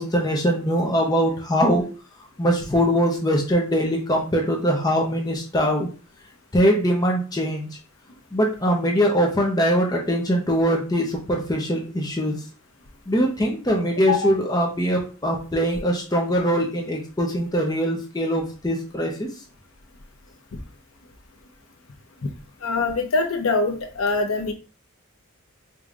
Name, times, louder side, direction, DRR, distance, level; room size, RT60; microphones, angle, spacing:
voice 1, 0.0-1.8 2.4-5.9 6.5-7.7 8.3-12.4 13.1-19.3, equal, 20° left, -1 dB, 0.7 m, -22 dB
voice 2, 22.6-24.5, left 3 dB, 70° left, 4 dB, 0.8 m, -23 dB
4.9 x 2.8 x 2.4 m, 0.35 s
head